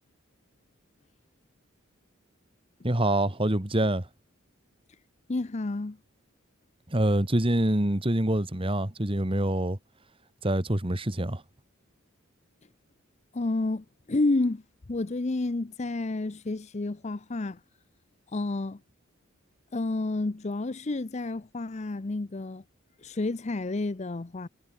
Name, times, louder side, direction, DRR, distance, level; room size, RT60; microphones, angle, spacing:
voice 1, 2.8-4.1 6.9-9.8 10.4-11.4, right 1 dB, 25° right, 1.8 m, -25 dB
voice 2, 5.3-6.0 13.3-14.6 14.9-17.6 18.3-18.8 19.7-22.6 23.0-24.5, left 2 dB, 35° left, 0.6 m, -30 dB
head